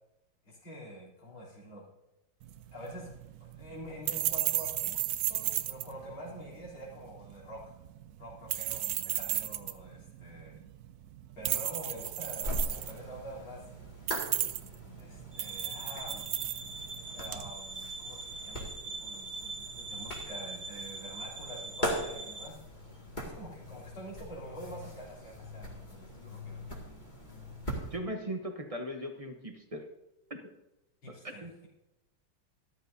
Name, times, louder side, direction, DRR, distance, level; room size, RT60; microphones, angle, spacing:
voice 1, 0.5-1.9 2.7-7.7 8.2-10.6 11.3-13.6 15.0-16.3 17.1-22.6 23.2-26.7 31.0-31.7, equal, 80° left, -5 dB, 4.3 m, -46 dB
sound 1, 2.4-17.5, right 13 dB, 75° right, 0.8 m, -35 dB
sound 2, 12.4-28.0, equal, 25° left, 2.2 m, -41 dB
sound 3, 15.3-22.5, right 3 dB, 55° right, 1.8 m, -42 dB
voice 2, 27.9-29.9 31.2-31.5, equal, 35° right, 4 dB, 0.5 m, -38 dB
13.5 x 12.5 x 2.7 m, 0.96 s
omnidirectional pair, 2.2 m